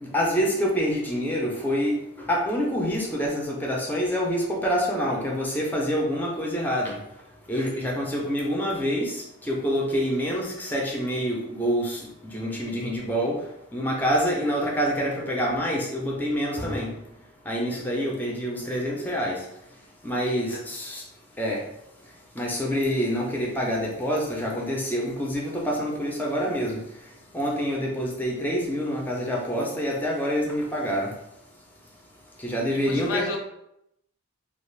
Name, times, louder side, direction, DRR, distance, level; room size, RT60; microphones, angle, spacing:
voice 1, 0.0-7.0 7.5-13.4 13.7-16.9 17.5-19.4 20.0-21.0 21.4-21.6 22.4-26.8 27.3-31.1 32.4-33.4, equal, 10° left, -2 dB, 0.5 m, -26 dB
voice 2, 20.2-20.6 32.7-33.4, left 3 dB, 85° left, 1 dB, 0.6 m, -32 dB
2.5 x 2.3 x 3.2 m, 0.80 s
head